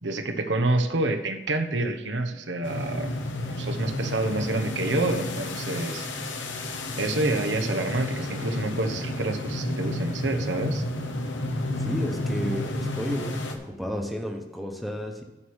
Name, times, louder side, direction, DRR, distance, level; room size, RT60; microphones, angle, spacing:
voice 1, 0.0-3.2 3.4-6.1 7.0-10.8, right 2 dB, 75° right, 6 dB, 1.0 m, -28 dB
sound 1, 2.6-13.5, left 1 dB, 90° left, 1.2 m, -31 dB
voice 2, 11.8-15.2, equal, ahead, 2 dB, 1.1 m, -32 dB
11.5 x 4.8 x 6.3 m, 1.1 s
head